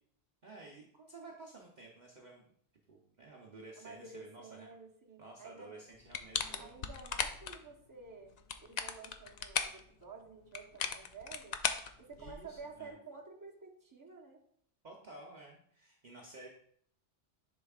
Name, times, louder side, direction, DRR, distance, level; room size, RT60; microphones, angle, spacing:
voice 1, 0.4-2.4 2.9-4.7 5.2-6.9 12.2-12.9 14.8-16.5, right 2 dB, 45° right, -2 dB, 0.9 m, -53 dB
voice 2, 3.8-5.8 6.6-11.6 12.0-14.4, right 4 dB, 20° right, 0 dB, 1.0 m, -51 dB
sound 1, 6.1-7.6 8.3-9.8 10.5-12.6, left 6 dB, 55° left, 0.5 m, -37 dB
10.0 x 4.3 x 2.4 m, 0.64 s
omnidirectional pair, 1.1 m